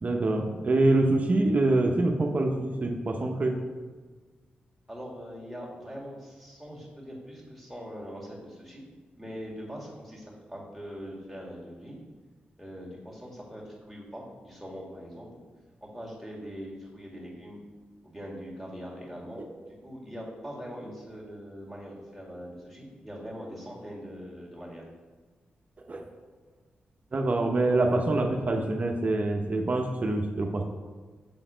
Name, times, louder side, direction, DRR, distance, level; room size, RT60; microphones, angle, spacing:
voice 1, 0.0-3.6 25.9-26.1 27.1-30.6, right 2 dB, 45° right, 2 dB, 0.8 m, -25 dB
voice 2, 4.9-8.8 9.2-12.0 12.6-15.3 15.8-17.6 18.0-19.4 19.7-24.8, equal, ahead, -4 dB, 2.2 m, -42 dB
6.9 x 4.0 x 5.1 m, 1.4 s
cardioid pair, 70°, 4 cm